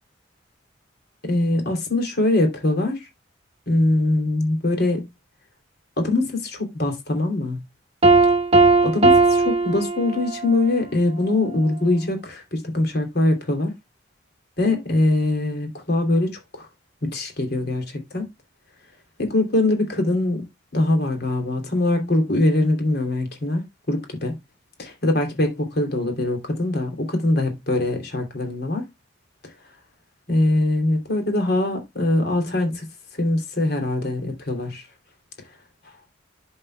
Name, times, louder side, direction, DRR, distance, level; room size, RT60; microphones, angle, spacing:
voice 1, 1.2-3.1 3.7-5.1 6.0-7.6 8.8-9.2 9.4-13.7 14.6-16.7 17.0-18.2 19.2-20.5 20.7-24.3 24.8-28.8 30.3-32.9 33.2-34.8, left 2 dB, 55° left, 3.0 m, -22 dB
Piano, 8.0-10.6, right 3 dB, 30° right, 0.9 m, -17 dB
11.0 x 5.6 x 2.3 m
head